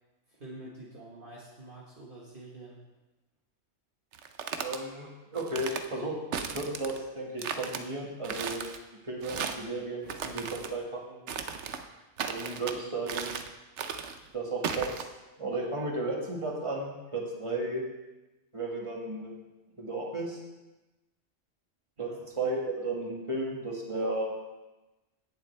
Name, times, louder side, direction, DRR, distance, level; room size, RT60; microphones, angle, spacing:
voice 1, 0.3-2.8 22.0-22.2, right 2 dB, 45° right, -5 dB, 1.6 m, -47 dB
sound 1, 4.1-4.8 5.4-5.9 6.3-7.0 7.4-7.8 8.2-8.8 9.2-9.7 10.1-10.7 11.3-11.8 12.2-12.8 13.1-13.5 13.8-14.2 14.6-15.0, right 7 dB, 70° right, 1.0 m, -36 dB
voice 2, 4.6-8.6 9.0-11.2 12.3-13.4 14.3-15.1 15.4-17.8 18.5-19.3 19.8-20.4 22.0-24.3, right 2 dB, 25° right, -2 dB, 2.0 m, -34 dB
16.5 x 7.3 x 3.4 m, 1.1 s
omnidirectional pair, 1.3 m